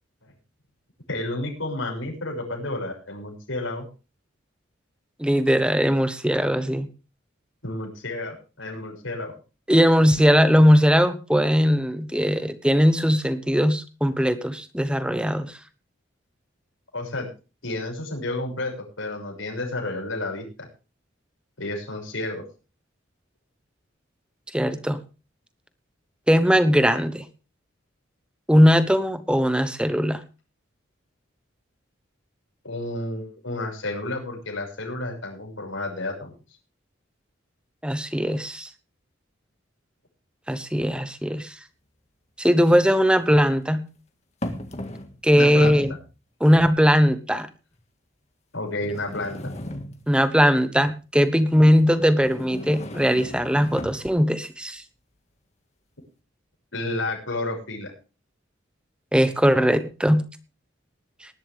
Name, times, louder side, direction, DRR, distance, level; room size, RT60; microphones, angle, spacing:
voice 1, 1.1-3.9 7.6-9.3 16.9-17.3 17.6-20.7 21.6-22.4 32.6-36.3 45.4-45.7 48.5-49.5 56.7-57.9, left 2 dB, 85° left, 1 dB, 6.3 m, -31 dB
voice 2, 5.2-6.9 9.7-15.6 24.5-25.0 26.3-27.2 28.5-30.2 37.8-38.7 40.5-41.5 42.4-43.9 45.2-45.9 46.4-47.5 50.1-54.8 59.1-60.2, equal, 5° right, 11 dB, 1.1 m, -19 dB
sound 1, 41.4-41.5 42.9-43.6 44.4-45.2 45.5-46.0 46.8-46.9 47.7-47.8 48.8-50.2 52.1-54.1, left 1 dB, 35° left, 1.8 m, -36 dB
19.5 x 11.5 x 3.5 m, 0.33 s
head